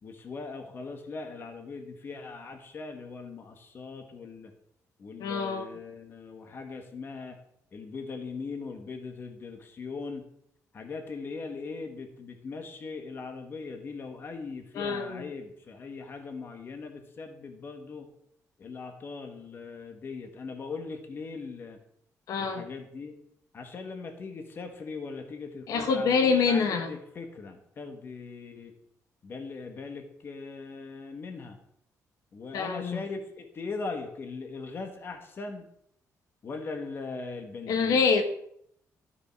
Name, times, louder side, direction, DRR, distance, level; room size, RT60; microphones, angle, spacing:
voice 1, 0.0-4.5 5.0-7.4 7.7-10.2 10.7-18.1 18.6-21.8 22.4-23.1 23.5-28.7 29.2-31.6 32.3-35.6 36.4-38.0, left 4 dB, 40° left, 5 dB, 1.8 m, -40 dB
voice 2, 5.2-5.7 14.7-15.2 22.3-22.6 25.7-26.9 32.5-33.0 37.7-38.2, left 5 dB, 80° left, 6 dB, 1.7 m, -26 dB
13.0 x 6.8 x 6.1 m, 0.71 s
cardioid pair, 170°, 6 cm